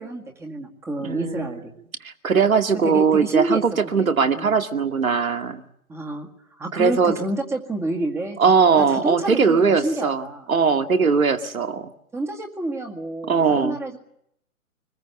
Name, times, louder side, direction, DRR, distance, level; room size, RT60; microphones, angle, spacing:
voice 1, 0.0-1.7 2.8-3.6 4.0-4.1 4.3-4.5 5.9-6.3 6.6-10.5 12.1-14.0, right 2 dB, 5° right, 2 dB, 2.0 m, -29 dB
voice 2, 1.0-1.5 2.0-5.6 6.7-7.1 8.4-11.9 13.3-13.8, right 5 dB, 70° right, 6 dB, 2.3 m, -20 dB
24.5 x 21.0 x 8.2 m, 0.74 s
figure-of-eight pair, 135°, 43 cm